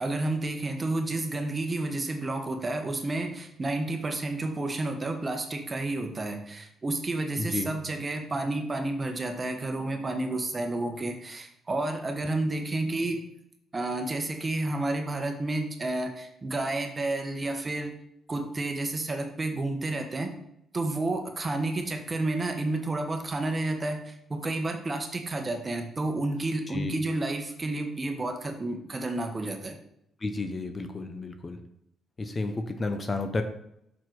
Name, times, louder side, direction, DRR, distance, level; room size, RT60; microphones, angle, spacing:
voice 1, 0.0-13.2 13.7-17.9 18.3-20.3 20.7-29.7, right 2 dB, 30° right, 5 dB, 1.1 m, -30 dB
voice 2, 7.4-7.7 26.7-26.9 30.2-31.6 32.2-33.4, left 3 dB, 30° left, 7 dB, 0.6 m, -32 dB
6.2 x 4.5 x 4.6 m, 0.77 s
cardioid pair, 90°, 0 cm